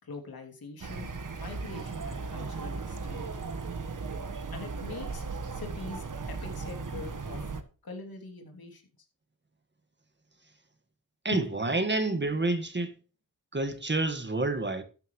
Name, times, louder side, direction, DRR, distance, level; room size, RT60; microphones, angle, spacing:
voice 1, 0.0-1.1 1.4-3.4 4.5-7.4 7.8-8.8 11.3-11.5, left 3 dB, 75° left, 2.9 m, -43 dB
sound 1, 0.8-7.6, right 4 dB, 60° right, 1.4 m, -37 dB
voice 2, 11.2-12.9 13.5-14.8, right 2 dB, 30° right, 1.7 m, -28 dB
12.5 x 10.5 x 3.2 m
wide cardioid pair, 75°, 36 cm